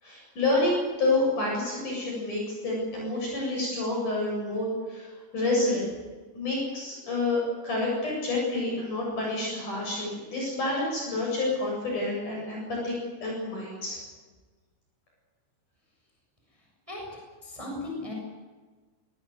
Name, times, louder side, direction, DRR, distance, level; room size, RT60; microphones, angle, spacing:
voice 1, 0.0-5.1 5.3-5.9 6.3-12.9 13.2-14.0, left 2 dB, 45° left, -2 dB, 8.9 m, -28 dB
voice 2, 17.4-18.1, left 2 dB, 5° right, -1 dB, 6.9 m, -36 dB
25.0 x 20.0 x 8.1 m, 1.3 s
omnidirectional pair, 5.1 m